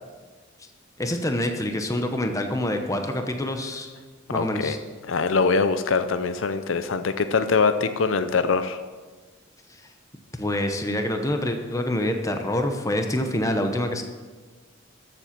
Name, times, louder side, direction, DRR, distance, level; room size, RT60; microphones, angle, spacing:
voice 1, 1.0-3.9 4.3-4.8 10.4-14.0, left 1 dB, 15° left, 5 dB, 0.9 m, -26 dB
voice 2, 4.3-4.8 5.0-8.8, left 4 dB, 80° left, 10 dB, 0.6 m, -23 dB
13.5 x 7.5 x 5.9 m, 1.4 s
head